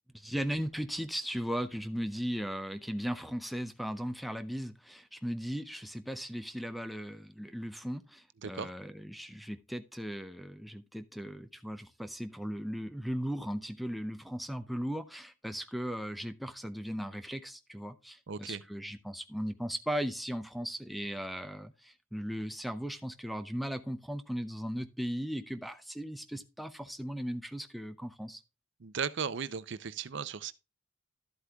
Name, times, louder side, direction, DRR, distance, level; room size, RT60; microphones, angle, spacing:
voice 1, 0.1-28.4, equal, ahead, 0.5 m, -37 dB
voice 2, 18.3-18.6 28.8-30.5, right 6 dB, 60° right, 0.6 m, -36 dB
12.0 x 8.0 x 2.3 m
head